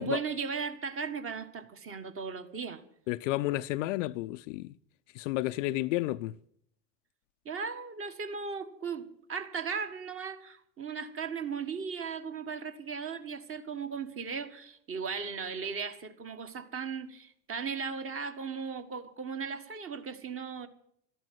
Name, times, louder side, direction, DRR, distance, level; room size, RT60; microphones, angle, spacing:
voice 1, 0.0-2.8 7.4-20.7, right 5 dB, 25° right, 1.6 m, -37 dB
voice 2, 3.1-4.7 5.2-6.3, left 17 dB, 50° left, 0.5 m, -31 dB
13.5 x 11.0 x 9.3 m
hypercardioid pair, 90°, 48 cm